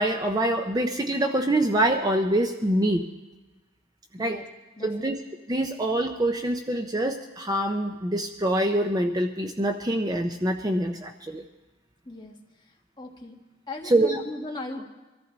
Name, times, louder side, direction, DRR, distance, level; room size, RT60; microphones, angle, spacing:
voice 1, 0.0-3.0 4.2-4.4 4.8-5.2 5.5-11.4 13.8-14.2, right 1 dB, 20° right, 5 dB, 0.6 m, -25 dB
voice 2, 4.8-5.1 12.0-12.4 13.0-13.4 13.7-14.9, left 2 dB, 20° left, 0 dB, 1.7 m, -37 dB
24.0 x 14.0 x 4.0 m, 1.2 s
head